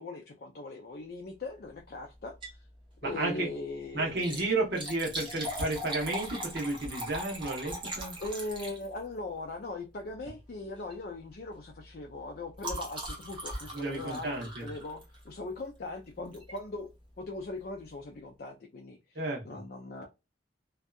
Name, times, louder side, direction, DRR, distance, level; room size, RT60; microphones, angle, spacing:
voice 1, 0.0-2.3 3.0-4.4 8.2-16.9 17.2-19.0 19.5-20.1, left 2 dB, 55° left, 0.4 m, -40 dB
Liquid, 2.2-2.7 3.0-3.1 4.0-9.2 10.2-10.4 10.8-11.0 11.3-15.4 16.3-16.6 17.1-17.2 17.4-17.5, right 1 dB, 25° right, 0.9 m, -40 dB
voice 2, 3.0-3.5 3.9-8.2 13.7-14.7 19.1-19.4, right 2 dB, 65° right, 1.0 m, -32 dB
2.6 x 2.3 x 2.3 m
head